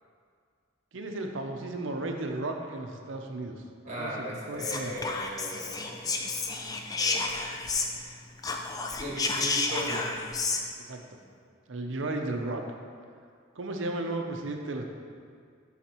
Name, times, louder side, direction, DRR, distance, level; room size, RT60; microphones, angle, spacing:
voice 1, 0.9-3.6 4.0-4.9 10.8-11.2 11.7-12.6 13.6-14.8, right 2 dB, 75° right, 3 dB, 0.6 m, -34 dB
voice 2, 3.8-6.3 7.0-7.5 9.0-10.1, equal, 35° right, -5 dB, 1.6 m, -37 dB
Whispering, 4.6-8.1 8.4-10.6, left 3 dB, 20° left, 0.3 m, -31 dB
11.5 x 4.0 x 3.0 m, 2.1 s
head